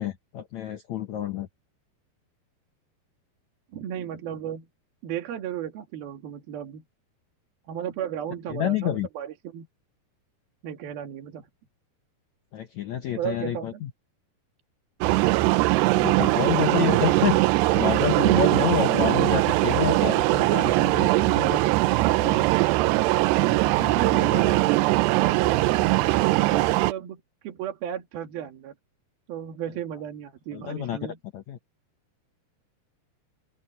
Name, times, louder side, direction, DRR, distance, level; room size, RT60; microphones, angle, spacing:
voice 1, 0.0-1.5 8.5-9.1 12.5-13.9 15.9-22.5 23.4-24.7 30.5-31.6, left 10 dB, 75° left, 1.7 m, -29 dB
voice 2, 3.7-4.7 5.0-6.8 7.7-9.7 10.6-11.5 13.2-13.8 18.2-18.5 23.8-24.7 25.1-28.7 29.3-31.2, right 9 dB, 65° right, 3.7 m, -34 dB
sound 1, 15.0-26.9, right 20 dB, 90° right, 2.8 m, -21 dB
open air
omnidirectional pair, 4.7 m